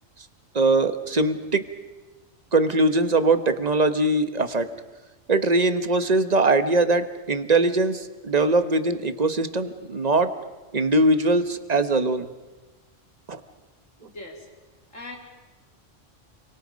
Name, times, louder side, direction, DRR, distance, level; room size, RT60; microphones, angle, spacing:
voice 1, 0.5-1.7 2.5-4.7 5.3-10.4 10.7-12.3 13.3-13.4, right 2 dB, 35° right, 10 dB, 1.2 m, -21 dB
voice 2, 14.0-14.5 14.9-15.2, left 2 dB, 90° left, 1 dB, 3.5 m, -40 dB
29.5 x 24.0 x 5.2 m, 1.2 s
omnidirectional pair, 1.3 m